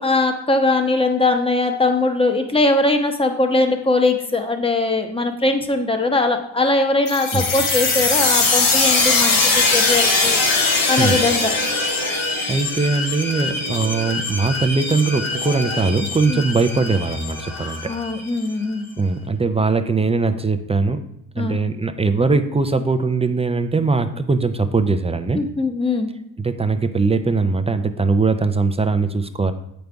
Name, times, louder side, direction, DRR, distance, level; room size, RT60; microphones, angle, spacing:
voice 1, 0.0-10.4 10.9-11.5 16.3-16.4 17.8-18.9 21.4-21.6 25.3-26.1, left 2 dB, 10° left, 5 dB, 0.8 m, -20 dB
sound 1, 7.1-18.5, left 3 dB, 75° left, 1.5 m, -21 dB
voice 2, 12.5-17.9 19.0-21.0 21.4-25.4 26.4-29.5, right 4 dB, 15° right, 8 dB, 0.4 m, -20 dB
7.9 x 5.2 x 3.4 m, 0.77 s
cardioid pair, 80°, 49 cm